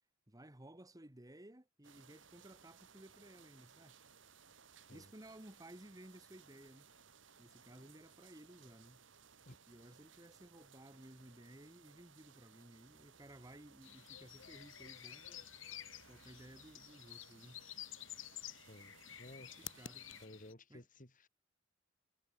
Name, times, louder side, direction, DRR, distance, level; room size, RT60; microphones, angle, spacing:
voice 1, 0.3-4.0 4.9-6.9 7.4-9.0 9.7-15.4 16.0-17.7 19.6-20.3 20.7-20.9, right 1 dB, 20° right, 1.9 m, -57 dB
sound 1, 1.8-20.3, right 6 dB, 70° right, 2.9 m, -63 dB
sound 2, 13.8-20.5, left 11 dB, 85° left, 1.9 m, -51 dB
voice 2, 19.2-19.7 20.2-21.3, left 1 dB, 45° left, 6.7 m, -55 dB
head